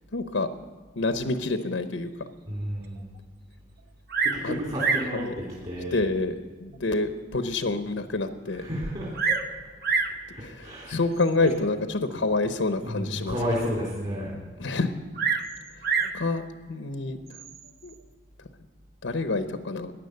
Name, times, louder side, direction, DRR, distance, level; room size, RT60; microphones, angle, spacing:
voice 1, 0.1-0.5 1.0-2.1 4.4-4.6 5.1-5.3 5.9-8.6 10.4-13.4 14.6-14.9 15.3-15.4 16.0-16.4 16.7-17.4 17.8-17.9 19.0-19.9, left 3 dB, 80° left, 9 dB, 0.8 m, -28 dB
voice 2, 2.5-3.0 4.2-6.0 8.5-9.3 10.3-11.0 12.1-12.2 12.8-14.4, equal, 35° right, -5 dB, 3.4 m, -32 dB
Bird vocalization bird call bird song, 4.1-4.5 4.8-5.2 6.0-6.1 6.7-6.8 7.3-7.4 7.6-7.7 8.8-9.5 9.8-10.2 11.2-11.5 15.1-16.2 17.3-17.7, right 5 dB, 55° right, 0.9 m, -27 dB
15.0 x 10.0 x 6.6 m, 1.4 s
head